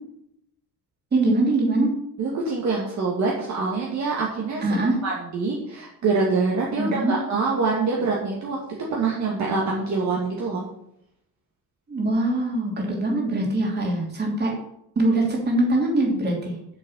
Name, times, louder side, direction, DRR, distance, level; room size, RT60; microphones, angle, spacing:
voice 1, 1.1-1.9 4.6-5.0 6.8-7.2 11.9-14.5 14.9-16.6, right 2 dB, 25° right, -1 dB, 3.2 m, -22 dB
voice 2, 2.2-8.6 8.9-10.6, right 4 dB, 45° right, -3 dB, 2.2 m, -25 dB
7.8 x 6.9 x 8.3 m, 0.76 s
cardioid pair, 175°, 40 cm